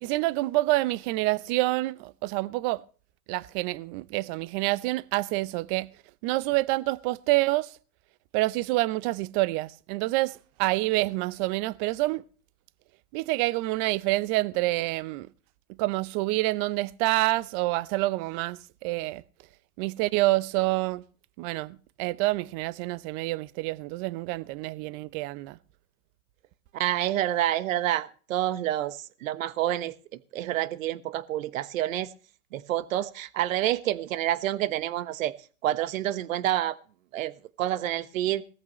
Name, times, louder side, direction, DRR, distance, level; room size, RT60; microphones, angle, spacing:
voice 1, 0.0-2.8 3.3-5.9 6.2-7.7 8.3-12.2 13.1-15.3 15.8-19.2 19.8-21.0 21.4-25.6, right 20 dB, 35° right, 0.7 m, -27 dB
voice 2, 26.7-29.9 30.3-32.1 32.5-35.3 35.6-36.8 37.1-38.4, right 13 dB, 60° right, 1.3 m, -28 dB
19.0 x 14.0 x 3.1 m
hypercardioid pair, 120°, 44 cm